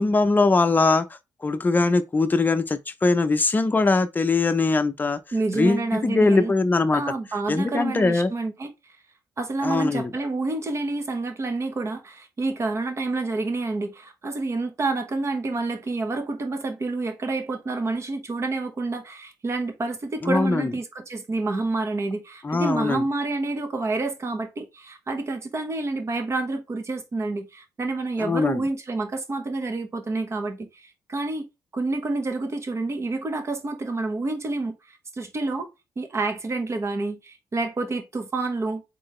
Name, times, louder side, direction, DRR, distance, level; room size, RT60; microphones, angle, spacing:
voice 1, 0.0-5.2 5.5-7.0 7.5-8.3 9.6-10.1 20.2-20.7 22.4-23.0 28.2-28.6, left 3 dB, 25° left, 0.6 m, -21 dB
voice 2, 5.3-6.5 6.9-8.7 9.4-31.5 31.7-35.7 36.0-38.8, right 3 dB, 40° right, 1.1 m, -28 dB
3.9 x 3.9 x 3.1 m
cardioid pair, 80°, 7 cm